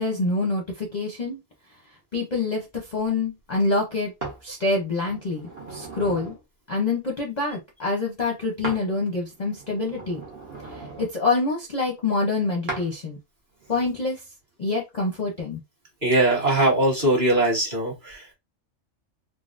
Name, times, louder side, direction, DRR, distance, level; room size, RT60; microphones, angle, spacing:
voice 1, 0.0-1.4 2.1-4.1 4.4-6.3 6.7-10.2 11.0-13.2 13.7-14.2 14.6-15.6, left 3 dB, 40° left, -1 dB, 0.6 m, -26 dB
sound 1, 4.2-4.4 5.0-6.4 8.6-8.8 9.3-11.1 12.7-12.9 13.6-13.9, right 2 dB, 50° right, 1.4 m, -37 dB
voice 2, 16.0-18.3, right 1 dB, 35° right, -4 dB, 1.5 m, -21 dB
3.8 x 2.0 x 2.4 m, 0.22 s
omnidirectional pair, 1.3 m